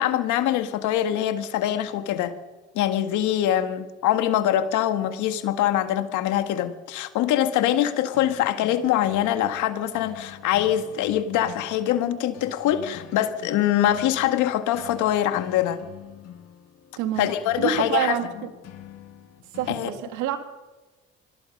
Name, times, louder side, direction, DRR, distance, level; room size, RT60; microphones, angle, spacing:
voice 1, 0.0-2.4 2.8-15.8 17.2-18.2 19.7-19.9, left 11 dB, 80° left, 9 dB, 1.8 m, -23 dB
sound 1, 8.1-19.8, left 10 dB, 60° left, 2.1 m, -45 dB
voice 2, 17.0-17.3 17.6-18.5 19.5-20.4, right 11 dB, 80° right, 8 dB, 2.1 m, -27 dB
25.5 x 20.5 x 5.4 m, 1.2 s
supercardioid pair, 80°, 30 cm